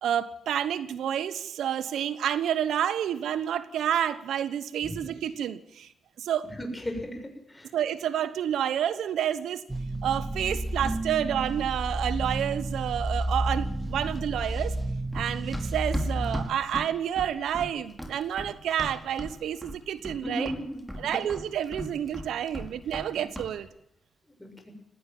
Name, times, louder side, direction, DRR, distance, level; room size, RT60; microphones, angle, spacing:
voice 1, 0.0-5.9 6.2-6.5 7.7-9.6 10.0-14.7 15.1-20.5 21.0-23.7, right 10 dB, 80° right, 15 dB, 1.0 m, -29 dB
voice 2, 6.6-7.2 7.5-7.7 20.2-20.9 21.1-21.2 24.4-24.7, equal, 15° left, 4 dB, 7.1 m, -35 dB
sound 1, 9.7-16.5, right 1 dB, 20° right, 1.9 m, -31 dB
Run, 15.1-19.4 19.6-20.2 20.5-23.1 23.3-23.5, left 1 dB, ahead, 4.9 m, -37 dB
19.0 x 17.0 x 9.3 m, 0.80 s
cardioid pair, 65°, 0 cm